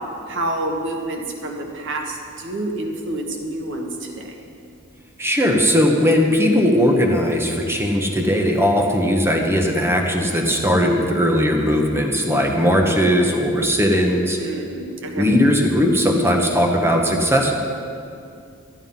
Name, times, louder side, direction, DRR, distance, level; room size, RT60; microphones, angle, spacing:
voice 1, 0.3-4.3 8.9-9.1 14.4-15.2, right 1 dB, 60° right, 2 dB, 1.5 m, -28 dB
voice 2, 5.2-14.4 15.2-17.5, equal, 10° right, 1 dB, 1.2 m, -18 dB
13.5 x 9.3 x 5.6 m, 2.4 s
head